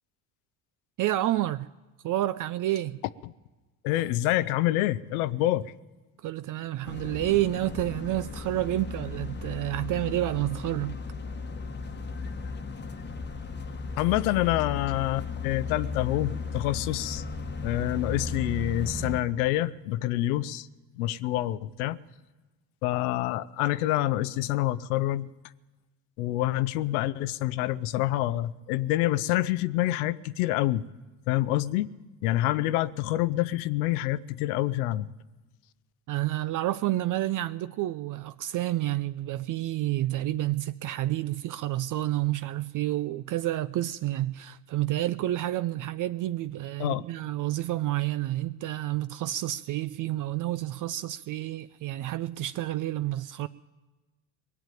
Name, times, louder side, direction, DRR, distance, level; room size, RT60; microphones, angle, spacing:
voice 1, 1.0-1.7 2.0-3.0 6.2-11.0 36.1-53.5, right 15 dB, 50° right, 0.5 m, -29 dB
voice 2, 3.8-5.7 14.0-17.2 17.6-20.7 21.0-22.0 22.8-25.3 26.2-30.8 31.3-31.9 32.2-35.1 46.8-47.0, left 15 dB, 85° left, 0.6 m, -27 dB
sound 1, 6.8-19.2, left 4 dB, 25° left, 1.1 m, -36 dB
20.0 x 7.3 x 9.1 m
supercardioid pair, 75°, 43 cm